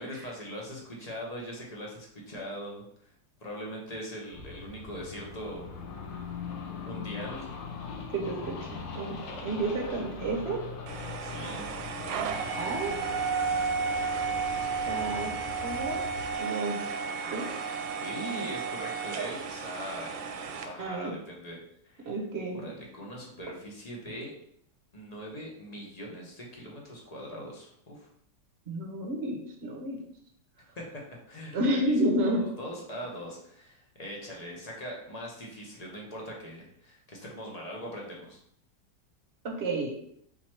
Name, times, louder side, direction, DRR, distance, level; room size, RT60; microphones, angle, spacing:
voice 1, 0.0-3.1 3.4-5.7 6.8-7.6 9.3-9.4 11.2-11.7 18.0-20.2 20.5-21.6 21.8-22.2 22.5-24.3 24.9-28.1 30.8-31.0 31.3-31.9 32.2-38.4, equal, 35° left, -2 dB, 0.7 m, -41 dB
sound 1, 4.3-16.4, left 5 dB, 80° left, 1.4 m, -41 dB
voice 2, 8.1-9.2 9.4-10.6 12.6-13.0 14.9-15.3 15.6-16.0 16.4-16.8 17.3-17.5 20.8-21.1 22.0-22.6 28.7-30.0 31.5-32.4 39.4-39.9, right 1 dB, 45° right, 1 dB, 0.9 m, -30 dB
sound 2, 10.9-20.7, right 5 dB, 80° right, 1.2 m, -33 dB
4.1 x 3.0 x 4.3 m, 0.69 s
omnidirectional pair, 2.0 m